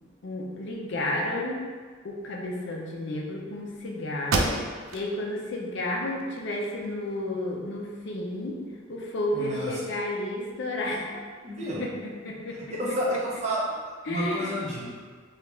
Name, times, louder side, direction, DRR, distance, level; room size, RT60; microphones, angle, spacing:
voice 1, 0.2-1.6 2.0-8.6 8.9-11.1 11.8-12.6 12.9-13.2 14.0-14.6, left 1 dB, 60° left, -1 dB, 0.5 m, -32 dB
sound 1, 3.7-3.8 4.2-5.1 5.6-5.7 6.2-7.1, right 3 dB, 80° right, 0.3 m, -29 dB
voice 2, 9.3-9.7 11.4-11.8 12.8-13.6 14.1-15.0, equal, 35° right, -6 dB, 0.7 m, -30 dB
3.2 x 2.4 x 3.0 m, 1.6 s
head